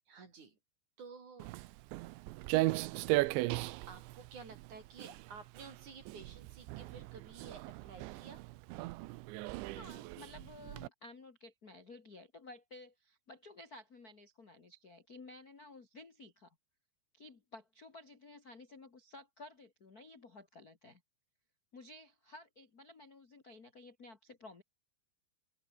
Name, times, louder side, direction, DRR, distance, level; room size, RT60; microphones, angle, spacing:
voice 1, 0.1-0.6 1.0-1.5 3.9-8.4, right 5 dB, 40° right, 5.4 m, -52 dB
Walk footsteps, 1.4-10.9, right 20 dB, 80° right, 3.0 m, -37 dB
voice 2, 9.6-16.6 17.1-21.0 21.7-24.6, left 2 dB, 55° left, 1.0 m, -54 dB
open air
omnidirectional pair, 5.4 m